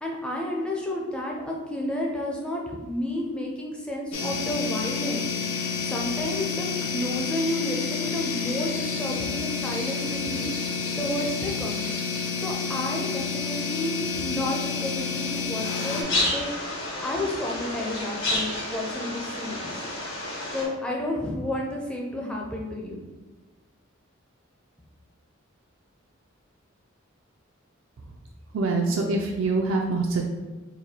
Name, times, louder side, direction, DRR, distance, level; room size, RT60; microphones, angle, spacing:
voice 1, 0.0-5.3 5.8-10.5 11.0-11.9 12.4-16.5 17.0-19.9 20.5-23.0, left 1 dB, 5° left, -2 dB, 0.4 m, -31 dB
sound 1, 4.1-16.0, left 5 dB, 80° left, 0.6 m, -29 dB
sound 2, 15.6-20.6, left 2 dB, 60° left, 1.1 m, -30 dB
voice 2, 28.5-30.2, right 3 dB, 65° right, 0 dB, 0.4 m, -25 dB
4.2 x 2.6 x 2.8 m, 1.2 s
head